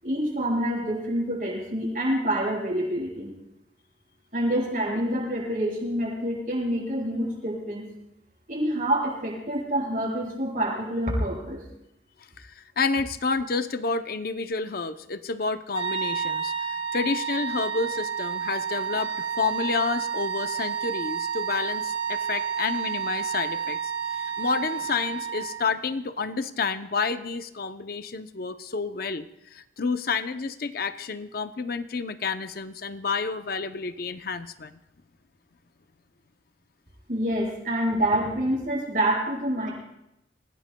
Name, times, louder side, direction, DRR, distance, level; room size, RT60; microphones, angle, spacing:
voice 1, 0.0-3.3 4.3-7.9 8.5-11.6 37.1-39.7, right 1 dB, 50° right, -3 dB, 7.3 m, -27 dB
voice 2, 12.4-34.8, left 4 dB, 55° left, 10 dB, 0.6 m, -30 dB
sound 1, 15.7-25.7, right 7 dB, 70° right, 6.6 m, -30 dB
28.5 x 17.5 x 2.2 m, 0.86 s
head